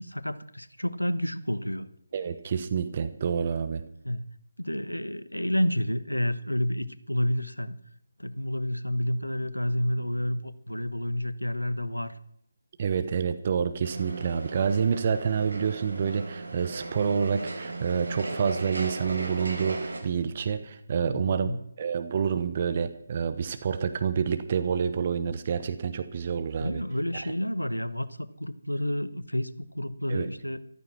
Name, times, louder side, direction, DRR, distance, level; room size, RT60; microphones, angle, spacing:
voice 1, 0.0-1.9 4.0-4.3 4.6-7.8 8.2-12.1 21.1-21.6 26.6-30.6, left 1 dB, 85° left, 14 dB, 1.2 m, -30 dB
voice 2, 2.1-3.8 12.8-21.5 21.8-26.8 30.1-30.3, right 6 dB, 35° right, 10 dB, 1.1 m, -28 dB
sound 1, 13.8-20.0, right 2 dB, 60° right, 4.6 m, -37 dB
14.0 x 13.0 x 6.0 m, 0.71 s
figure-of-eight pair, 150°, 0 cm